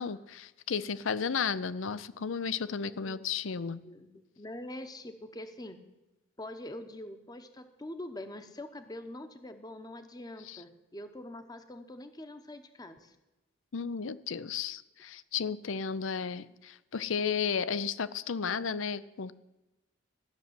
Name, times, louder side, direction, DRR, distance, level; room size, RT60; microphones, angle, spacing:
voice 1, 0.0-3.8 10.5-10.6 13.7-19.3, left 6 dB, 80° left, 17 dB, 0.6 m, -33 dB
voice 2, 2.7-3.3 3.6-5.8 6.4-13.2, left 1 dB, 20° left, 8 dB, 0.9 m, -44 dB
14.0 x 6.7 x 9.5 m, 1.0 s
head